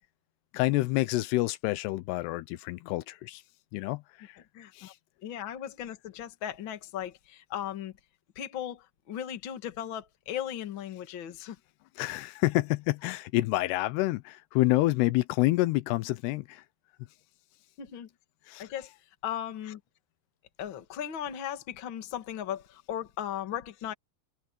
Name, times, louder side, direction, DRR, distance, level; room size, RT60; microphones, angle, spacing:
voice 1, 0.5-3.4 3.7-4.4 4.7-5.0 12.0-16.6 18.5-18.6, left 19 dB, 90° left, 2.8 m, -28 dB
voice 2, 4.5-4.9 5.2-7.9 8.3-11.6 17.8-18.1 18.6-18.9 19.2-19.8 20.6-23.9, left 10 dB, 45° left, 1.7 m, -37 dB
omnidirectional pair, 4.7 m